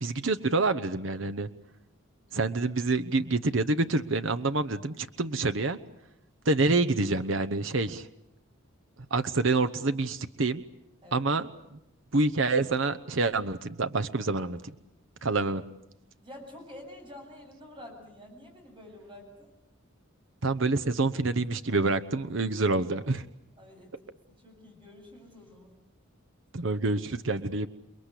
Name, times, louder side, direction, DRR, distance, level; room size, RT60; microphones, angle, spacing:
voice 1, 0.0-1.5 2.3-5.8 6.5-8.1 9.1-10.6 11.1-11.8 12.1-14.7 15.2-15.6 20.4-23.2 26.5-27.7, right 3 dB, 65° right, 11 dB, 0.9 m, -27 dB
voice 2, 16.2-19.5 23.6-25.8, left 1 dB, 25° right, 1 dB, 7.8 m, -48 dB
29.0 x 21.5 x 8.4 m, 0.81 s
head